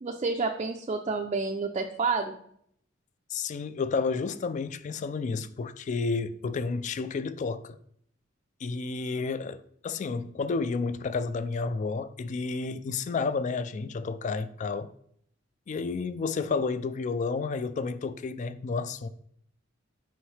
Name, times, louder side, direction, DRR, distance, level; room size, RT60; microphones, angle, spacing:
voice 1, 0.0-2.3, right 4 dB, 35° right, 0.4 m, -29 dB
voice 2, 3.3-7.8 8.6-14.9 15.7-19.1, left 4 dB, 40° left, 0.3 m, -31 dB
6.2 x 4.7 x 3.2 m
head